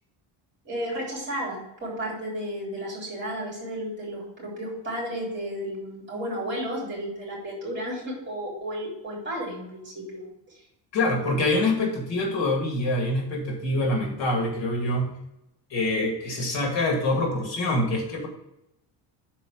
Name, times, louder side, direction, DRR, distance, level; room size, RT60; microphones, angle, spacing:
voice 1, 0.6-10.3 10.5-10.6 11.2-11.3, equal, 25° right, -2 dB, 2.9 m, -33 dB
voice 2, 10.9-15.1 15.7-18.3, left 2 dB, 70° left, 1 dB, 2.3 m, -25 dB
6.1 x 4.7 x 6.1 m, 0.86 s
cardioid pair, 180°, 46 cm